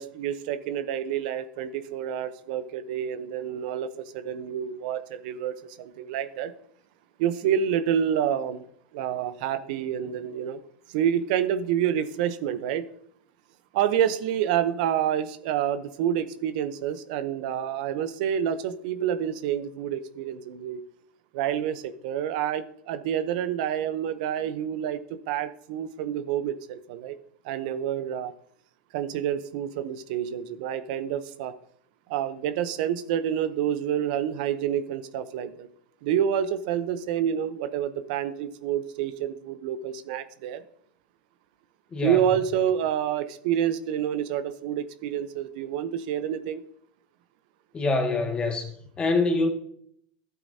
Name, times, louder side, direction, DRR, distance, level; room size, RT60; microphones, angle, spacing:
voice 1, 0.0-6.5 7.2-8.6 8.9-10.6 10.9-12.9 13.7-20.8 21.3-25.0 25.3-27.2 27.4-28.3 28.9-31.5 32.1-35.7 36.0-40.6 42.0-46.6, right 9 dB, 65° right, 0.7 m, -28 dB
voice 2, 41.9-42.2 47.7-49.5, left 3 dB, 20° left, 1.9 m, -25 dB
12.5 x 8.3 x 2.8 m
hypercardioid pair, 110°, 5 cm